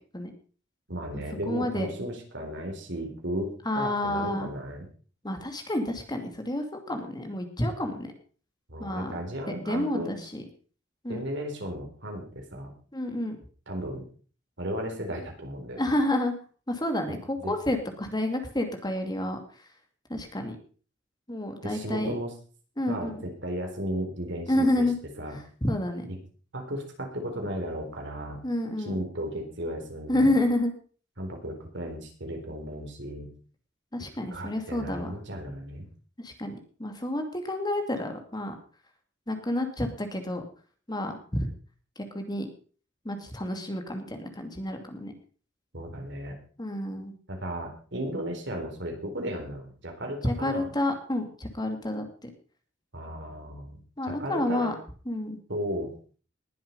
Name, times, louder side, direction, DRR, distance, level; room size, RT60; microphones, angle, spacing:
voice 1, 0.9-4.9 8.7-10.1 11.1-12.7 13.7-14.1 14.6-15.9 17.1-17.5 21.6-22.3 22.9-24.9 25.2-25.4 26.5-28.4 28.8-30.4 31.2-33.3 34.3-35.9 45.7-46.4 47.3-50.7 52.9-53.8 54.1-54.7 55.5-55.9, equal, 65° right, 3 dB, 4.1 m, -35 dB
voice 2, 1.5-1.9 3.7-4.5 5.2-8.1 8.8-9.2 9.6-10.4 11.0-11.2 12.9-13.4 15.8-16.3 16.7-19.4 20.1-20.6 21.3-22.2 22.8-23.2 24.5-24.9 25.6-26.0 28.4-29.0 30.1-30.7 33.9-35.2 36.2-36.5 36.8-38.5 39.3-40.4 40.9-41.5 42.1-42.5 43.0-45.1 46.6-47.1 50.2-52.1 54.0-54.7 55.1-55.4, left 1 dB, 20° left, 5 dB, 2.4 m, -29 dB
20.0 x 7.7 x 5.4 m, 0.41 s
head